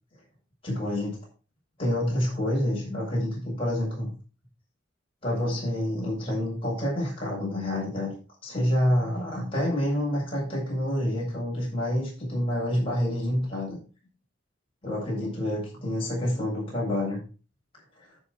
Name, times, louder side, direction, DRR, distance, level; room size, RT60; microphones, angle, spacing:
voice 1, 0.6-1.2 1.8-4.1 5.2-8.1 8.4-13.8 14.8-17.2 18.0-18.1, left 1 dB, 25° left, -5 dB, 7.1 m, -28 dB
13.5 x 5.5 x 4.9 m, 0.36 s
head